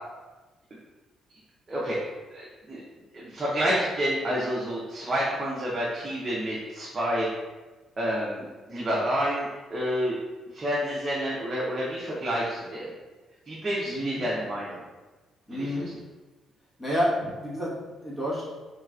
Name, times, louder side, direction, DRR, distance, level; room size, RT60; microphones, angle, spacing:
voice 1, 2.3-2.8 3.1-7.3 8.0-10.2 10.5-12.9 13.5-14.8 15.5-15.9, equal, 30° right, -6 dB, 0.6 m, -29 dB
voice 2, 13.8-14.2 15.5-15.9 16.8-17.1 17.4-18.4, equal, 20° left, -7 dB, 1.2 m, -29 dB
3.2 x 2.9 x 2.4 m, 1.2 s
cardioid pair, 90°, 0 cm